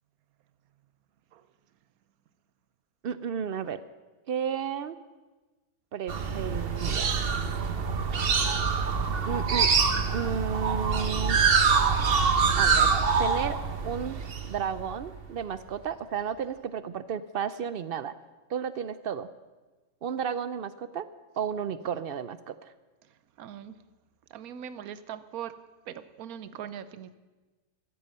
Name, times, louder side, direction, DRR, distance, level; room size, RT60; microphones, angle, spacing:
voice 1, 3.0-3.8 4.3-5.0 5.9-7.3 9.3-9.7 10.1-11.4 12.6-12.9 13.2-13.6 13.8-18.1 18.5-19.3 20.0-21.1 21.4-22.7, right 7 dB, 65° right, 0.6 m, -33 dB
sound 1, 6.1-15.2, right 5 dB, 45° right, 1.1 m, -25 dB
voice 2, 23.4-23.8 24.3-25.6 25.9-27.2, right 9 dB, 90° right, 1.2 m, -40 dB
14.5 x 14.0 x 5.5 m
omnidirectional pair, 1.5 m